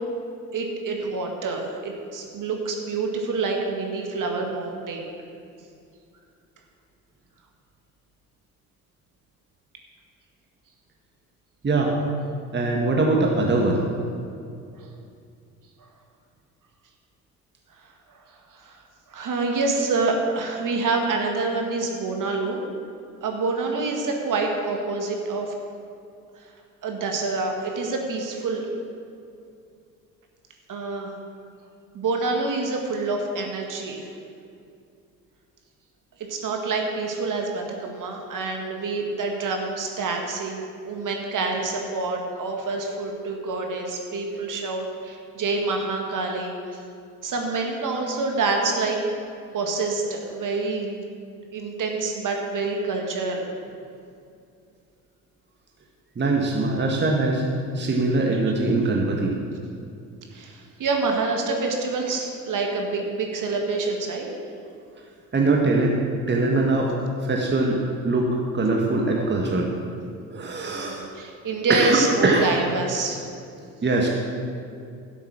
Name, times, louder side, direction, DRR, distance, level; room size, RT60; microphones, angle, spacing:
voice 1, 0.5-5.0 14.8-14.9 18.1-18.2 18.5-18.8 19.1-22.6 23.2-25.5 26.8-28.7 30.7-31.1 31.9-34.1 36.3-46.8 47.2-49.0 49.5-51.0 51.5-53.5 60.3-64.3 70.6-73.2, right 3 dB, 45° right, 2 dB, 2.1 m, -27 dB
voice 2, 11.6-11.9 12.5-13.8 56.1-59.4 65.3-65.9 66.3-66.9 67.2-69.7 70.3-71.0 71.7-72.5 73.8-74.1, right 2 dB, 25° right, 0 dB, 1.7 m, -22 dB
12.0 x 8.0 x 6.4 m, 2.4 s
figure-of-eight pair, 55°, 44 cm